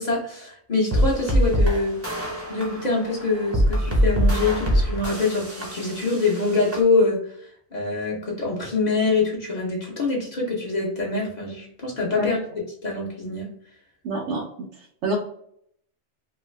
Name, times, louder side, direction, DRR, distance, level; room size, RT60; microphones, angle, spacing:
voice 1, 0.0-2.0 2.5-7.3 7.7-12.4 12.8-13.5, left 3 dB, 40° left, -4 dB, 0.8 m, -24 dB
sound 1, 0.9-6.8, equal, 15° right, 0.5 m, -24 dB
voice 2, 14.0-14.4 14.7-15.2, right 1 dB, 90° right, -2 dB, 1.0 m, -27 dB
3.1 x 2.1 x 3.1 m, 0.68 s
omnidirectional pair, 1.2 m